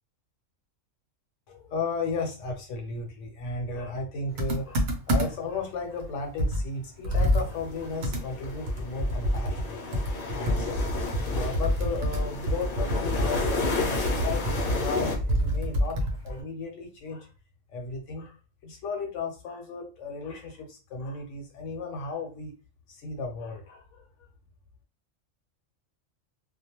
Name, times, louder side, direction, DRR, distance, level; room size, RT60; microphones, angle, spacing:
voice 1, 1.5-10.0 10.3-17.3 17.7-18.4 18.6-22.5 22.9-24.3, left 3 dB, 70° left, 3 dB, 0.9 m, -35 dB
Computer keyboard, 4.4-5.6 6.0-6.1 6.4-9.7 9.9-16.4, equal, 65° right, 0.9 m, -28 dB
sound 1, 7.4-15.2, left 4 dB, 45° left, 0.5 m, -33 dB
2.3 x 2.1 x 2.9 m, 0.32 s
omnidirectional pair, 1.4 m